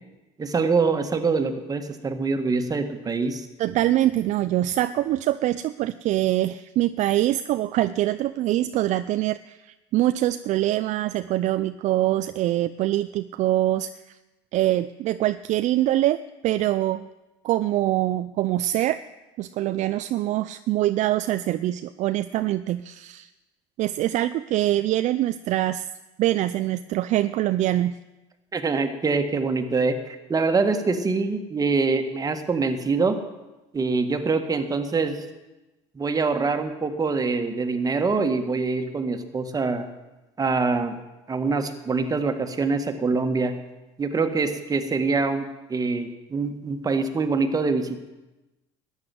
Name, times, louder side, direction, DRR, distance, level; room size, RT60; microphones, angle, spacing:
voice 1, 0.4-3.5 28.5-33.2 33.7-35.1 35.9-39.9 40.4-40.9 41.3-43.5 44.0-48.0, right 4 dB, 25° right, 6 dB, 1.8 m, -24 dB
voice 2, 3.6-14.1 14.5-17.1 17.4-19.0 19.4-23.3 23.8-25.9 26.2-27.9, right 14 dB, 55° right, 12 dB, 0.5 m, -24 dB
13.5 x 9.8 x 7.7 m, 1.1 s
supercardioid pair, 85°, 15 cm